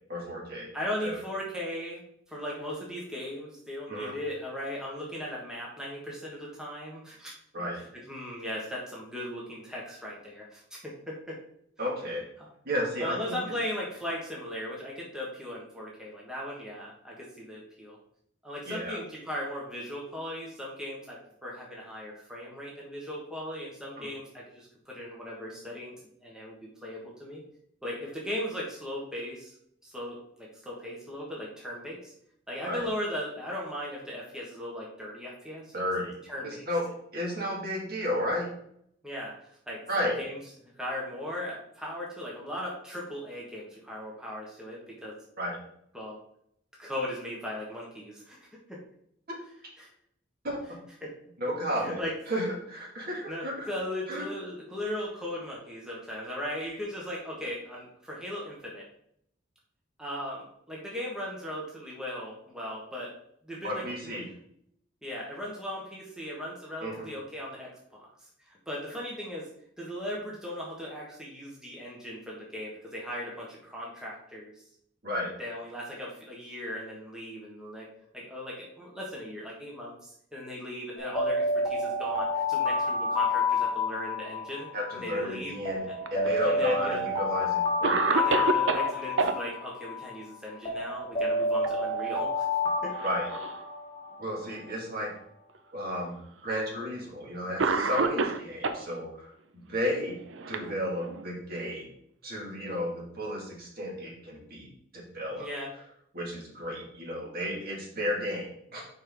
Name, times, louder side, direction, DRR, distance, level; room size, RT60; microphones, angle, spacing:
voice 1, 0.1-0.7 1.0-1.2 3.9-4.1 7.5-7.8 11.8-12.2 12.6-13.2 18.7-19.0 24.0-24.1 32.7-32.8 35.7-36.1 36.4-36.9 37.1-38.5 39.9-40.1 45.4-45.6 49.3-49.4 50.4-50.6 51.4-52.0 52.3-53.7 54.1-54.3 63.6-64.3 66.8-67.1 75.0-75.3 84.7-85.9 86.1-88.1 93.0-93.3 94.2-95.1 95.7-96.2 96.4-99.3 99.7-100.2 100.5-101.9 102.2-104.7 104.9-105.5 106.1-108.9, equal, 50° right, -2 dB, 2.4 m, -32 dB
voice 2, 0.7-2.0 2.3-7.3 7.8-11.4 12.4-12.5 13.0-18.0 18.4-25.9 26.2-26.5 26.8-27.4 27.8-29.5 29.8-32.1 32.5-35.7 36.3-36.7 39.0-45.2 45.9-46.2 46.8-48.4 48.7-48.8 49.8-49.9 51.0-51.1 51.8-52.1 53.3-58.9 60.0-63.1 63.4-64.1 65.0-69.5 69.8-74.6 75.4-77.9 78.1-84.7 84.9-85.5 86.4-87.1 88.1-92.5 92.8-92.9 105.4-105.7, left 1 dB, 5° right, -4 dB, 1.5 m, -38 dB
Alarm, 81.0-85.1 85.7-90.1 90.7-94.5, left 2 dB, 25° left, 2.0 m, -29 dB
Cough, 86.0-86.9 87.4-87.5 87.8-89.4 91.2-91.7 92.0-92.1 92.9-93.6 94.4-94.5 95.5-95.6 96.8-97.0 97.6-98.8 99.8-101.2, right 4 dB, 80° right, 0.7 m, -29 dB
6.5 x 5.4 x 3.9 m, 0.70 s
head